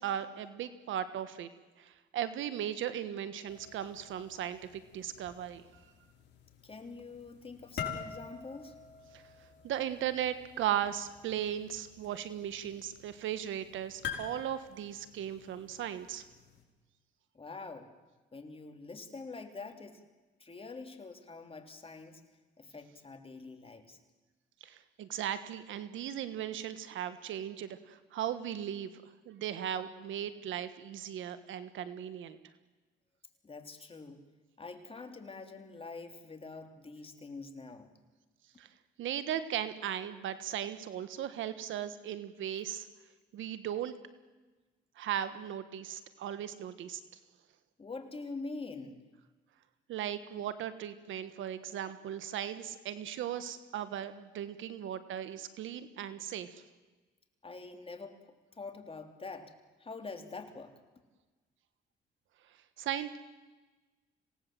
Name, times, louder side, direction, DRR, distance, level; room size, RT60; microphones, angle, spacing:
voice 1, 0.0-1.5 1.8-5.7 9.1-9.2 9.6-16.2 24.6-28.9 29.2-32.4 38.6-38.7 39.0-42.9 43.3-43.9 45.0-47.0 49.9-56.6 62.8-63.2, right 10 dB, 80° right, 12 dB, 1.5 m, -37 dB
sound 1, 3.5-16.6, left 7 dB, 65° left, 5.5 m, -47 dB
voice 2, 6.6-8.8 17.3-17.9 18.3-20.0 20.4-22.2 22.6-24.0 33.4-34.2 34.6-37.9 47.8-49.0 57.4-59.5 59.8-60.8, left 3 dB, 30° left, 6 dB, 3.2 m, -45 dB
26.5 x 18.5 x 7.7 m, 1.2 s
cardioid pair, 90°, 20 cm